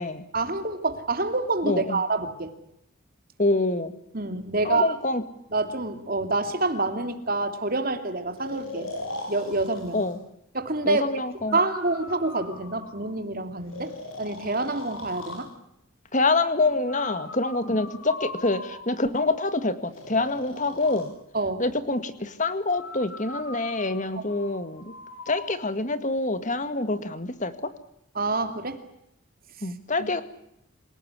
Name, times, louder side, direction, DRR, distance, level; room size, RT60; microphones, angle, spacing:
voice 1, 0.3-2.5 4.1-4.9 5.5-8.9 9.3-10.0 10.5-11.1 11.5-13.9 14.2-15.5 21.3-21.6 24.2-24.3 28.1-28.8 30.0-30.1, right 3 dB, 45° right, 7 dB, 2.8 m, -27 dB
voice 2, 1.7-2.0 3.4-3.9 4.6-5.2 9.9-10.2 10.9-11.6 16.1-21.1 21.6-24.9 25.3-27.7 29.6-30.2, left 2 dB, 35° left, 11 dB, 2.0 m, -26 dB
Breathing, 8.4-10.2 11.5-13.2 13.7-15.5 16.9-19.1 19.9-21.1 22.7-25.6, left 2 dB, 75° left, 7.3 m, -40 dB
27.5 x 18.0 x 9.7 m, 0.80 s
head